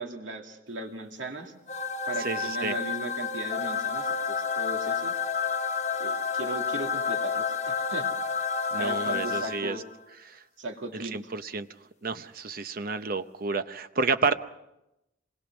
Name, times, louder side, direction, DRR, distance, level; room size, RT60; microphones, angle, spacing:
voice 1, 0.0-1.5 2.1-5.1 6.0-8.1 8.8-9.8 10.6-11.3, right 2 dB, 75° right, 3 dB, 2.5 m, -37 dB
sound 1, 1.7-9.9, left 5 dB, 35° left, 0.9 m, -30 dB
voice 2, 2.2-2.7 8.7-9.8 10.3-10.4 10.9-11.7 12.0-14.3, right 4 dB, 50° right, 10 dB, 0.7 m, -30 dB
26.5 x 20.5 x 6.1 m, 0.90 s
head